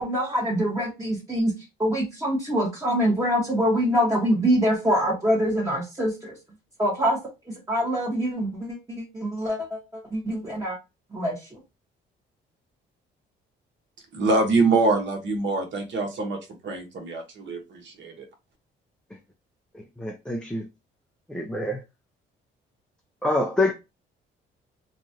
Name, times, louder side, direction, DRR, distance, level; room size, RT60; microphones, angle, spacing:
voice 1, 0.0-1.5 1.8-6.3 6.8-7.2 7.5-10.8 11.1-11.5, equal, 15° right, 1.2 m, -25 dB
voice 2, 14.1-16.4 16.6-18.1, right 3 dB, 65° right, 1.1 m, -24 dB
voice 3, 20.0-20.7 21.3-21.8 23.2-23.7, left 1 dB, 5° left, 0.4 m, -25 dB
2.9 x 2.4 x 2.7 m
cardioid pair, 90°, 20 cm